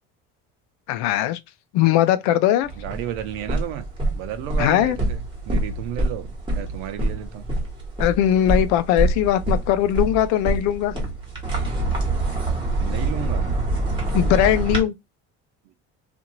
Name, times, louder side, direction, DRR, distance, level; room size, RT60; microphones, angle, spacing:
voice 1, 0.9-1.4 1.7-2.7 4.6-5.0 8.0-11.0 14.1-14.9, left 12 dB, 65° left, 0.5 m, -20 dB
sound 1, 2.6-14.8, right 2 dB, 15° right, 1.3 m, -26 dB
voice 2, 2.8-3.9 4.1-5.2 5.4-7.5 12.8-13.5 15.6-15.7, right 11 dB, 80° right, 0.7 m, -32 dB
2.6 x 2.5 x 2.9 m
cardioid pair, 135°, 30 cm